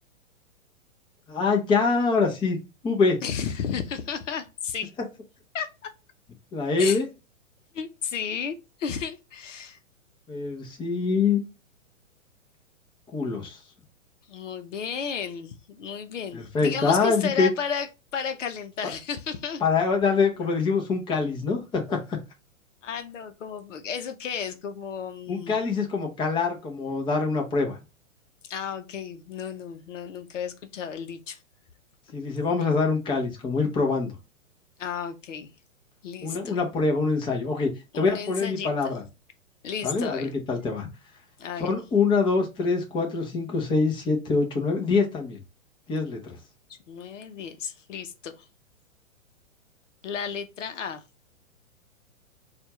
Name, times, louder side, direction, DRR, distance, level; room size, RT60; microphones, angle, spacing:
voice 1, 1.3-2.6 2.8-3.2 6.5-7.0 10.3-11.4 13.1-13.6 16.3-17.5 19.6-22.2 25.3-27.8 32.1-34.1 36.2-37.7 37.9-39.0 39.8-40.9 41.6-45.4 45.9-46.4, left 4 dB, 10° left, 0.7 m, -24 dB
voice 2, 3.2-4.9 5.5-5.9 6.8-7.0 7.7-9.8 14.3-19.6 22.8-25.6 28.4-31.4 32.6-32.7 34.8-35.5 36.0-36.6 37.9-39.0 39.6-40.3 41.4-41.7 46.7-48.5 50.0-51.0, left 7 dB, 65° left, 0.8 m, -33 dB
4.2 x 2.4 x 3.0 m
hypercardioid pair, 120°, 41 cm